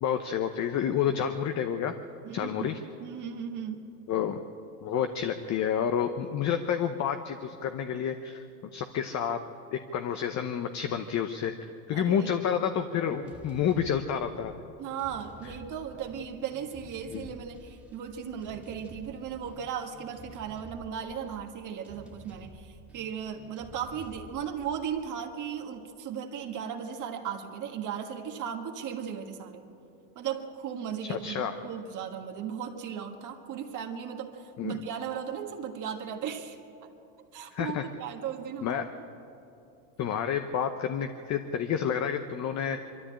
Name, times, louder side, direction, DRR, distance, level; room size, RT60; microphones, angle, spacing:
voice 1, 0.0-1.9 2.3-2.8 4.1-4.4 4.8-8.4 8.7-9.4 9.7-14.5 17.1-17.3 31.1-31.5 34.6-34.8 37.5-37.8 38.6-38.9 40.0-42.8, left 8 dB, 40° left, 8 dB, 0.9 m, -29 dB
voice 2, 2.2-2.7 3.0-3.9 11.9-12.3 14.8-29.7 30.2-36.9 37.3-38.8, right 8 dB, 45° right, 3 dB, 1.7 m, -36 dB
sound 1, 13.1-25.8, right 2 dB, 5° right, 2.1 m, -51 dB
23.0 x 13.5 x 8.8 m, 2.8 s
supercardioid pair, 125°, 43 cm